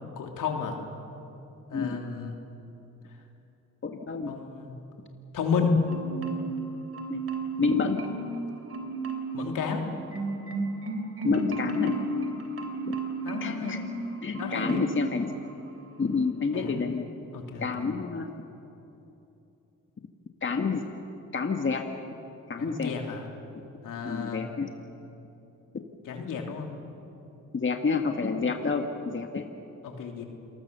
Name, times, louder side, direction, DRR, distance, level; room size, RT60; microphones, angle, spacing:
voice 1, 0.2-0.8 1.7-2.3 4.3-4.7 5.3-5.7 9.3-9.8 13.2-13.7 14.4-14.9 16.5-16.8 17.3-17.9 22.6-23.2 23.8-24.4 26.0-26.7 29.8-30.2, left 6 dB, 75° left, 3 dB, 3.0 m, -32 dB
voice 2, 3.8-4.3 7.1-7.2 7.6-8.0 11.2-11.9 12.9-13.0 13.4-13.8 14.2-15.3 16.0-17.1 17.6-18.3 20.4-20.8 21.3-21.9 22.5-22.9 24.0-24.7 27.5-29.4, left 4 dB, 35° left, 4 dB, 1.7 m, -28 dB
Marimba xylophone, 5.9-6.7 6.9-8.4 8.7-9.4 9.8-14.0 14.3-15.1 15.5-15.7, right 2 dB, 45° right, 3.3 m, -33 dB
27.5 x 20.5 x 6.9 m, 2.9 s
supercardioid pair, 60°, 32 cm